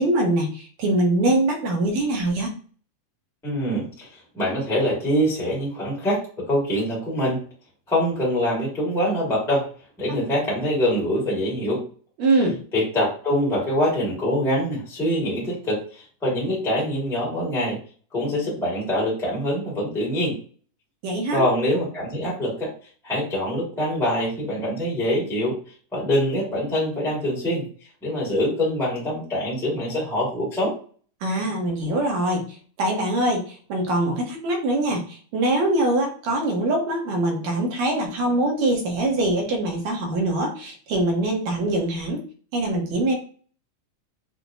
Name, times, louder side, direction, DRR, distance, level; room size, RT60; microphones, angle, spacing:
voice 1, 0.0-2.5 12.2-12.6 21.0-21.4 31.2-42.2 42.5-43.1, right 1 dB, 70° right, 1 dB, 2.1 m, -23 dB
voice 2, 3.4-7.4 7.9-9.7 10.0-11.8 12.7-17.8 18.1-20.4 21.3-22.7 23.0-25.6 25.9-27.6 28.0-30.7, equal, ahead, -6 dB, 0.9 m, -24 dB
6.2 x 2.2 x 2.6 m, 0.42 s
omnidirectional pair, 3.5 m